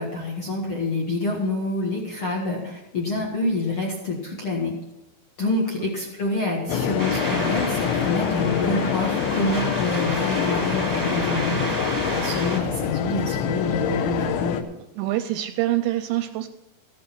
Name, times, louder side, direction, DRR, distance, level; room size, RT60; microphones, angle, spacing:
voice 1, 0.0-4.7 5.4-14.6, left 2 dB, 65° left, -1 dB, 1.3 m, -27 dB
voice 2, 5.4-5.9 15.0-16.5, right 14 dB, 85° right, 10 dB, 2.5 m, -26 dB
sound 1, 6.7-14.6, left 8 dB, 85° left, 3.3 m, -26 dB
sound 2, 7.0-12.6, right 2 dB, 25° right, 0.9 m, -31 dB
15.0 x 9.7 x 5.9 m, 0.93 s
omnidirectional pair, 5.3 m